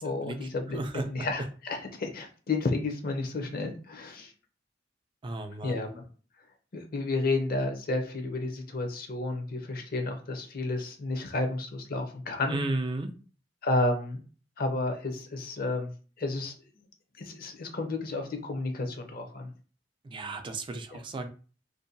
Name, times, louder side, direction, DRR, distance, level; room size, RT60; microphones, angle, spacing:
voice 1, 0.0-4.3 5.6-6.0 6.7-12.6 13.6-14.2 14.6-15.9 16.2-16.5 17.2-19.5 20.9-21.0, left 2 dB, 55° left, 5 dB, 0.6 m, -31 dB
voice 2, 0.7-1.1 5.2-5.9 12.5-13.1 20.0-21.3, right 2 dB, 25° right, 7 dB, 0.3 m, -33 dB
2.6 x 2.2 x 2.6 m, 0.38 s
head